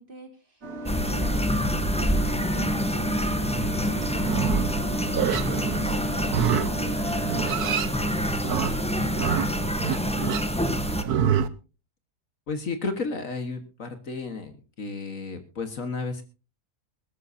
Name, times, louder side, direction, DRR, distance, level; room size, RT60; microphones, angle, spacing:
voice 1, 0.0-11.0, right 3 dB, 35° right, 3 dB, 2.9 m, -45 dB
sound 1, 0.6-7.8, right 2 dB, 55° right, 2.6 m, -35 dB
sound 2, 0.9-11.0, equal, 5° left, 0.8 m, -27 dB
Livestock farm animals working animals, 4.2-11.5, right 9 dB, 75° right, 1.3 m, -28 dB
voice 2, 12.5-16.2, left 3 dB, 55° left, 7 dB, 1.9 m, -32 dB
21.5 x 13.0 x 2.7 m, 0.33 s
omnidirectional pair, 1.7 m